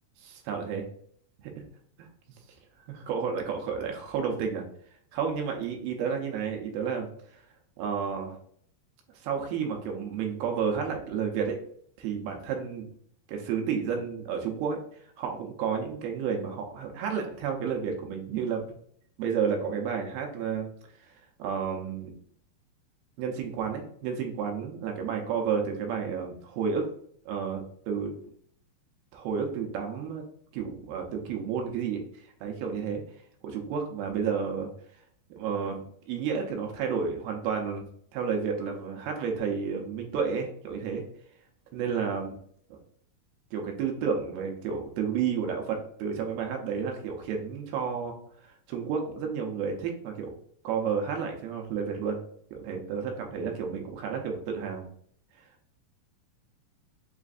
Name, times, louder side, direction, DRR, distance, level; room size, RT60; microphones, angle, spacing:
voice 1, 0.2-0.9 1.4-1.6 2.0-2.1 2.9-4.6 5.1-7.4 7.8-8.3 9.1-11.6 12.0-12.9 13.3-18.8 19.2-20.7 21.0-22.2 23.2-26.9 27.3-28.1 29.1-30.2 30.5-33.0 33.4-34.7 35.3-37.9 38.1-41.0 41.7-42.4 42.7-42.8 43.5-48.1 48.4-50.3 50.6-52.2 52.5-54.9, right 6 dB, 90° right, 2 dB, 2.5 m, -31 dB
6.1 x 2.4 x 2.5 m, 0.63 s
omnidirectional pair, 4.3 m